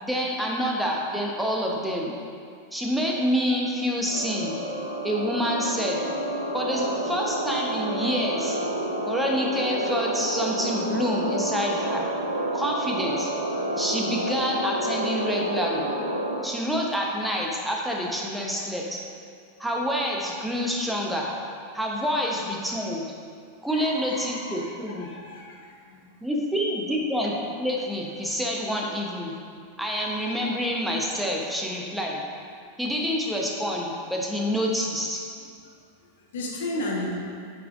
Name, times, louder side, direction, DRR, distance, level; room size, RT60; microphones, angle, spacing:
voice 1, 0.0-2.2 2.7-4.6 5.0-6.0 6.5-8.6 9.1-12.1 12.5-13.3 13.8-15.9 16.4-19.0 19.6-21.4 21.7-23.0 23.6-25.1 26.2-29.3 29.8-32.2 32.8-35.2, equal, 5° right, -2 dB, 1.0 m, -27 dB
sound 1, 4.1-16.4, right 1 dB, 90° left, 0.7 m, -29 dB
voice 2, 23.7-26.0 36.3-37.1, left 1 dB, 60° left, -3 dB, 1.3 m, -34 dB
8.7 x 5.9 x 2.6 m, 2.3 s
figure-of-eight pair, 90°, 0 cm